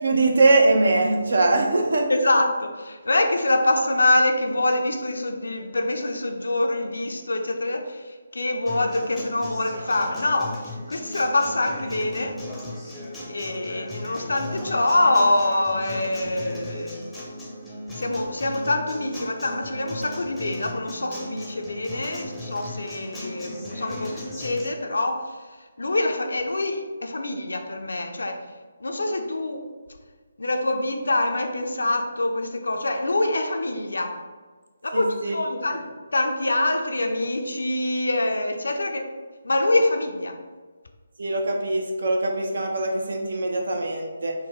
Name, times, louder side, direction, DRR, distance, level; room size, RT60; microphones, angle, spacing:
voice 1, 0.0-2.1 34.9-35.4 41.2-44.3, right 2 dB, 60° right, 2 dB, 0.6 m, -22 dB
voice 2, 2.1-12.4 13.3-17.0 17.9-28.4 28.8-29.6 30.4-34.1 34.8-35.9 36.1-39.1 39.4-40.4, left 2 dB, 65° left, 4 dB, 0.4 m, -25 dB
Acoustic guitar, 8.7-24.7, left 1 dB, ahead, 0.6 m, -37 dB
3.9 x 2.2 x 3.4 m, 1.4 s
figure-of-eight pair, 145°, 0 cm